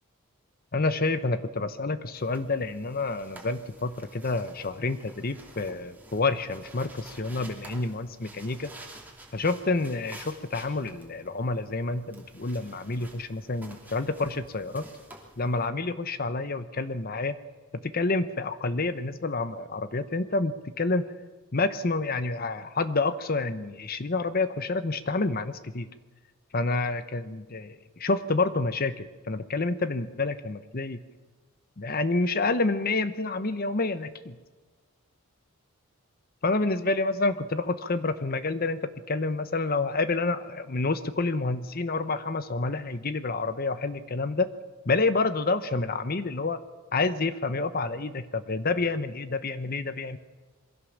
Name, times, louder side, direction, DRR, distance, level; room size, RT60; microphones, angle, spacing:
voice 1, 0.7-8.7 9.3-14.9 15.4-17.4 17.7-21.1 21.5-25.9 26.5-31.0 31.8-34.4 36.4-44.5 44.9-46.6 46.9-50.2, left 3 dB, 45° left, 12 dB, 0.9 m, -28 dB
sound 1, 2.1-15.7, right 1 dB, 10° right, 2.8 m, -50 dB
23.0 x 16.5 x 7.3 m, 1.3 s
head